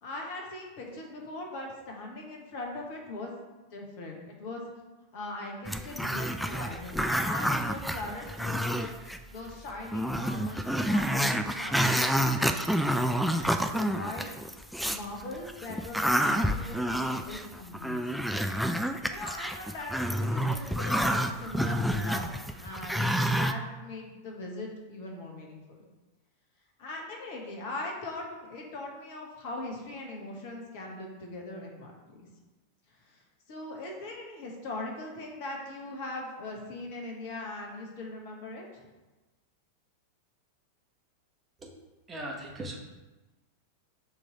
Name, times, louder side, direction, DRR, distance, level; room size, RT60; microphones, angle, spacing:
voice 1, 0.0-3.3 3.7-4.6 5.1-14.3 14.6-18.0 19.1-19.9 20.2-25.6 26.8-32.3 32.9-33.2 33.5-38.8, left 2 dB, 50° left, 0 dB, 1.3 m, -40 dB
Growling, 5.6-9.2 9.5-9.6 9.9-15.0 15.5-23.5, equal, ahead, 0.4 m, -28 dB
voice 2, 42.1-42.8, right 1 dB, 20° right, -2 dB, 1.3 m, -38 dB
6.0 x 3.2 x 5.1 m, 1.1 s
figure-of-eight pair, 90°, 0 cm